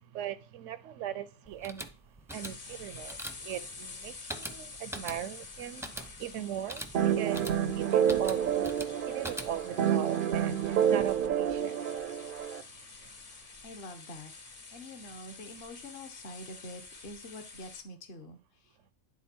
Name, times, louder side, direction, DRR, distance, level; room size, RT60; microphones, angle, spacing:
voice 1, 0.1-1.8 2.3-8.7 9.0-11.7, right 10 dB, 85° right, 1.0 m, -39 dB
sound 1, 1.5-9.8, right 1 dB, 5° right, 0.4 m, -44 dB
sound 2, 2.3-17.8, left 4 dB, 35° left, 0.7 m, -48 dB
sound 3, 6.9-12.6, right 9 dB, 60° right, 0.6 m, -28 dB
voice 2, 13.6-14.3 14.7-18.9, left 1 dB, 55° left, 1.2 m, -46 dB
10.0 x 3.7 x 4.4 m
omnidirectional pair, 1.2 m